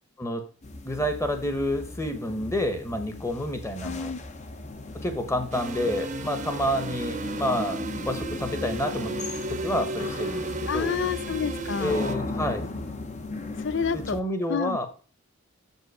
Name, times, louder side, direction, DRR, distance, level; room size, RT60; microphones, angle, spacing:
sound 1, 0.6-14.2, left 2 dB, 35° left, 0.8 m, -37 dB
voice 1, 0.8-4.1 5.0-9.1 9.5-10.9 11.8-12.6 13.9-14.9, left 1 dB, 15° left, 1.0 m, -29 dB
voice 2, 3.8-4.2 10.7-12.0 13.6-14.2 14.5-14.8, left 6 dB, 60° left, 0.4 m, -29 dB
sound 2, 5.5-12.1, right 2 dB, 35° right, 0.8 m, -34 dB
7.1 x 5.5 x 4.8 m
head